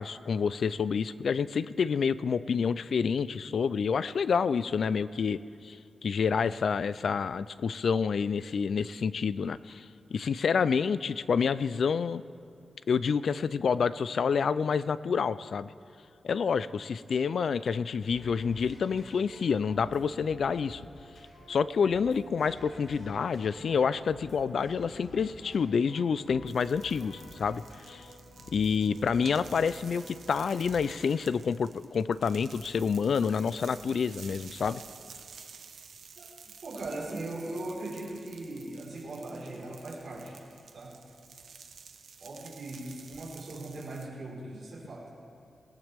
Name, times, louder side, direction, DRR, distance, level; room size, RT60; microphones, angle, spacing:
voice 1, 0.0-5.4 5.6-5.8 6.0-9.9 10.1-12.2 12.9-15.7 16.2-20.8 21.5-28.1 28.5-34.8, left 6 dB, 60° left, 16 dB, 0.3 m, -28 dB
sound 1, 18.0-31.1, left 1 dB, 80° left, 4.5 m, -50 dB
sound 2, 26.5-44.1, right 6 dB, 75° right, 1.0 m, -51 dB
voice 2, 36.6-40.4 40.7-41.0 42.2-45.1, right 2 dB, 50° right, -6 dB, 4.2 m, -39 dB
19.5 x 17.5 x 3.5 m, 2.6 s
wide cardioid pair, 180°, 0 cm